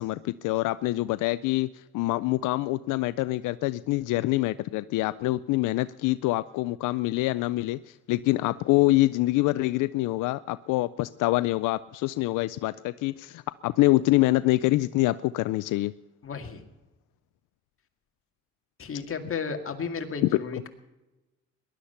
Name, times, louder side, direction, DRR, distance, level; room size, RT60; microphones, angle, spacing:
voice 1, 0.0-1.7 1.9-15.9 20.2-20.3, left 18 dB, 90° left, 16 dB, 0.5 m, -25 dB
voice 2, 16.2-16.6 18.8-20.7, left 5 dB, 45° left, 5 dB, 2.1 m, -33 dB
19.0 x 11.5 x 5.7 m, 1.0 s
cardioid pair, 90°, 30 cm